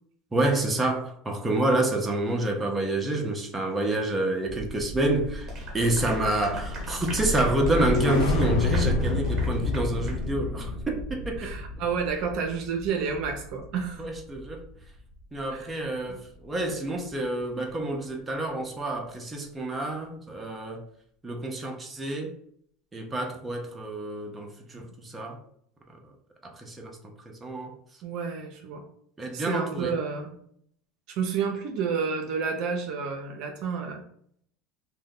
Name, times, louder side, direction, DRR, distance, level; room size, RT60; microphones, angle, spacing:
voice 1, 0.3-5.5 5.7-11.6 14.0-14.6 15.3-20.8 21.2-22.3 22.9-25.4 26.4-27.7 29.2-30.0, right 1 dB, 15° right, 1 dB, 0.6 m, -28 dB
sound 1, 4.5-14.9 15.2-15.5, left 2 dB, 70° left, 0.6 m, -30 dB
Clapping / Applause, 5.4-10.2, right 3 dB, 40° right, 1.0 m, -41 dB
voice 2, 11.4-14.0 15.5-15.8 24.7-24.9 28.0-28.8 29.3-30.3 31.1-34.0, right 6 dB, 60° right, 3 dB, 0.6 m, -30 dB
2.6 x 2.2 x 3.7 m, 0.65 s
hypercardioid pair, 95°, 0 cm